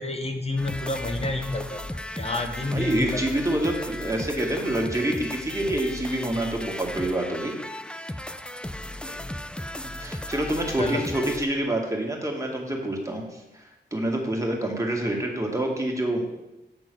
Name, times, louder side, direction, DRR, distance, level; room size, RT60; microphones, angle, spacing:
voice 1, 0.0-1.8 2.1-3.2 9.1-9.2 10.8-11.1, left 2 dB, 35° left, 5 dB, 1.1 m, -29 dB
sound 1, 0.6-11.4, left 1 dB, 5° left, 0.4 m, -36 dB
voice 2, 2.7-7.6 10.0-16.3, right 1 dB, 15° right, 0 dB, 1.7 m, -27 dB
8.1 x 3.8 x 6.1 m, 0.97 s
cardioid pair, 55°, 19 cm